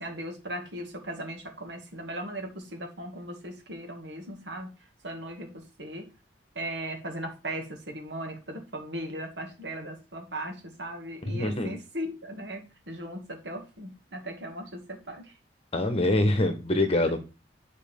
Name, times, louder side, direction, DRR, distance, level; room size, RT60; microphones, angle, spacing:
voice 1, 0.0-4.7 5.0-6.1 6.6-12.6 12.9-15.3, right 1 dB, 75° right, 2.1 m, -38 dB
voice 2, 11.3-11.7 15.7-17.2, left 1 dB, 35° left, 1.2 m, -24 dB
10.0 x 4.7 x 3.5 m
head